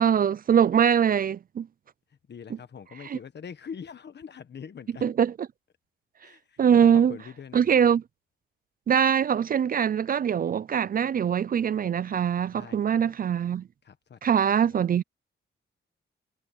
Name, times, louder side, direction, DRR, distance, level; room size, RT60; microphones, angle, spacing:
voice 1, 0.0-1.7 3.1-3.2 5.0-5.3 6.6-7.1 7.5-8.0 8.9-13.7 14.2-15.0, right 8 dB, 45° right, 0.4 m, -22 dB
voice 2, 2.1-5.1 6.2-7.9 12.5-13.1 13.8-14.9, left 7 dB, 55° left, 1.5 m, -44 dB
cardioid pair, 100°, 21 cm